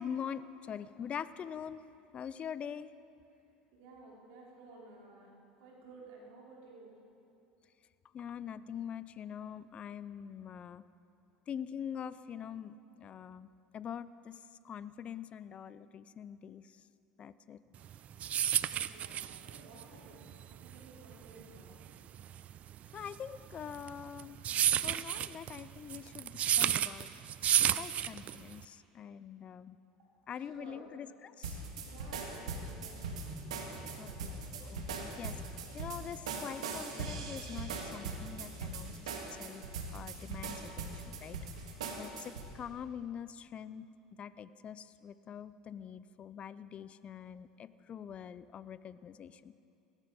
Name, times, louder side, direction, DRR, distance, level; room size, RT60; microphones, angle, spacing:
voice 1, 0.0-1.8 2.1-2.9 8.1-10.8 11.5-16.8 17.2-17.6 22.9-24.4 24.8-27.1 27.8-29.8 30.3-31.6 34.0-39.6 39.9-41.4 42.0-43.9 44.2-49.5, left 8 dB, 35° left, 16 dB, 0.5 m, -44 dB
voice 2, 3.7-5.3 5.6-6.9 18.8-20.3 20.6-21.8 30.0-30.1 30.4-30.8 31.8-33.2 33.7-34.4, right 3 dB, 65° right, -4 dB, 4.2 m, -54 dB
sound 1, 17.8-28.6, right 11 dB, 40° right, 0.4 m, -32 dB
sound 2, 31.4-42.5, right 4 dB, 80° right, 1.7 m, -41 dB
sound 3, 32.6-38.9, right 1 dB, 20° right, 3.4 m, -54 dB
17.0 x 14.0 x 5.0 m, 2.6 s
hypercardioid pair, 80°, 3 cm